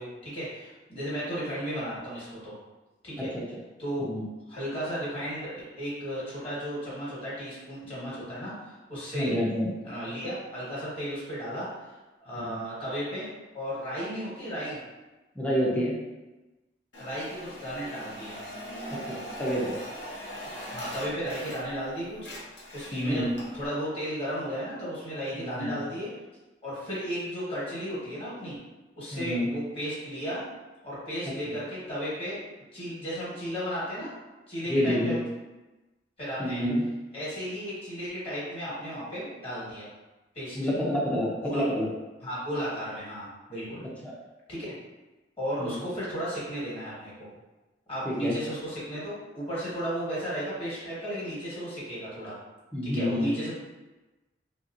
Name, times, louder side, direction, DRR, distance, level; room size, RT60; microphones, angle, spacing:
voice 1, 0.0-2.5 3.0-3.3 3.8-4.1 4.5-8.5 8.9-9.3 9.8-11.7 12.2-13.3 13.5-14.8 17.0-18.4 20.7-22.2 22.7-26.1 26.6-28.6 28.9-30.4 30.8-32.4 32.7-34.1 34.5-35.2 36.2-36.6 37.1-39.9 40.3-40.6 41.4-41.7 42.2-43.8 44.5-44.7 45.4-47.3 47.9-52.3 52.8-53.5, equal, 35° left, -9 dB, 1.4 m, -34 dB
voice 2, 4.0-4.3 9.1-9.7 12.4-12.6 15.4-15.9 18.9-19.7 22.9-23.3 25.4-25.8 29.1-29.5 31.4-31.6 34.7-35.2 36.4-36.8 40.5-41.9 44.0-44.1 45.6-45.8 48.0-48.4 52.7-53.3, equal, 10° left, -5 dB, 0.6 m, -28 dB
sound 1, 16.9-21.9 22.1-23.7, equal, 75° left, 0.7 m, -41 dB
3.2 x 2.8 x 2.5 m, 1.1 s
head